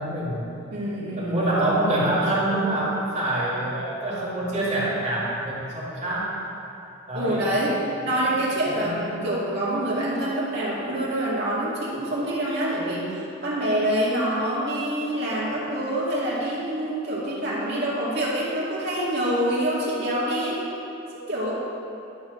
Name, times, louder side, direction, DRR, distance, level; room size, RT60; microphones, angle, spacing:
voice 1, 0.0-0.5 1.2-6.4 7.1-7.5 8.0-8.1 8.7-9.1, right 1 dB, 35° right, -8 dB, 2.2 m, -26 dB
voice 2, 0.7-1.5 7.1-7.7 8.0-20.6 21.3-21.5, right 1 dB, 50° right, -7 dB, 2.3 m, -26 dB
11.5 x 4.3 x 6.4 m, 2.8 s
head